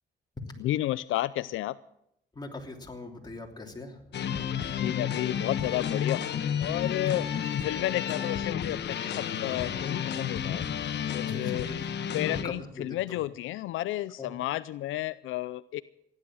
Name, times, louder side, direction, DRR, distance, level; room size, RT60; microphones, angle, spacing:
voice 1, 0.6-1.8 4.7-6.3 6.6-7.4 7.6-10.7 11.1-15.8, left 15 dB, 85° left, 16 dB, 0.5 m, -32 dB
voice 2, 2.3-4.2 7.0-7.2 11.2-11.9 12.2-13.2 14.2-14.3, left 3 dB, 20° left, 1 dB, 3.1 m, -41 dB
sound 1, 4.1-12.4, left 8 dB, 60° left, 1.3 m, -31 dB
16.0 x 11.0 x 7.6 m, 0.78 s
cardioid pair, 90°, 20 cm